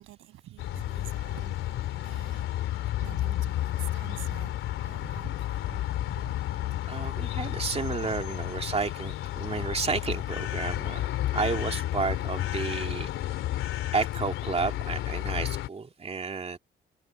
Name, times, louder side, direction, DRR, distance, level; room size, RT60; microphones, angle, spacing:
voice 1, 0.0-6.4 7.4-8.4 8.7-9.0 9.9-10.2, right 15 dB, 90° right, 7.6 m, -48 dB
sound 1, 0.6-15.7, left 13 dB, 90° left, 3.2 m, -31 dB
voice 2, 6.9-13.1 13.9-16.6, right 4 dB, 30° right, 2.7 m, -31 dB
cardioid pair, 90°, 20 cm